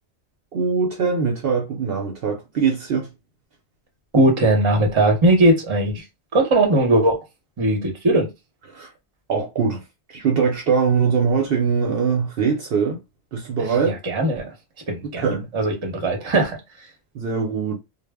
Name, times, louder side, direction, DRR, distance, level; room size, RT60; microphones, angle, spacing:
voice 1, 0.5-3.1 8.7-8.9 9.3-9.8 10.1-13.0 13.3-14.0 15.2-15.5 17.1-17.8, right 5 dB, 60° right, 0.8 m, -22 dB
voice 2, 4.1-6.0 6.3-7.2 7.6-8.3 13.9-14.5 14.9-15.3 15.5-16.6, right 1 dB, 30° right, 0.7 m, -19 dB
2.0 x 2.0 x 3.4 m
omnidirectional pair, 1.2 m